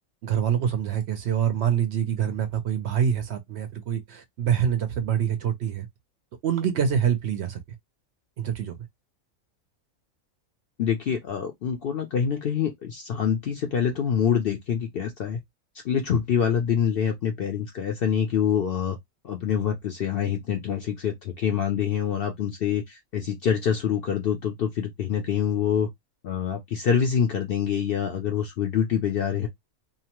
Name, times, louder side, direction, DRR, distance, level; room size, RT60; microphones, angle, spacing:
voice 1, 0.2-5.9 6.4-7.6 8.4-8.8, right 8 dB, 65° right, 0.7 m, -25 dB
voice 2, 10.8-15.4 15.8-19.0 19.2-25.9 26.2-29.5, left 8 dB, 60° left, 0.6 m, -26 dB
2.7 x 2.1 x 2.9 m
omnidirectional pair, 1.4 m